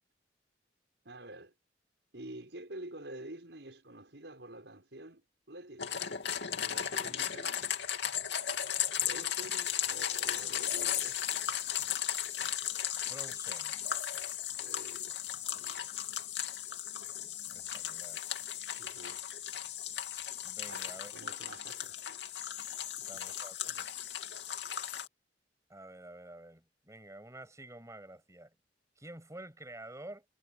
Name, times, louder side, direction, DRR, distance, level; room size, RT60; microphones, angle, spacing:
voice 1, 1.0-1.5 2.1-6.1 6.6-7.7 9.0-11.6 14.6-15.2 15.5-15.9 18.8-19.2 20.7-22.3, right 1 dB, 80° right, 5.8 m, -48 dB
sound 1, 5.8-25.1, left 10 dB, 85° left, 2.6 m, -36 dB
voice 2, 13.1-13.8 17.5-18.2 20.4-21.1 23.1-23.9 25.7-28.5 29.0-30.2, right 1 dB, 20° right, 6.7 m, -49 dB
head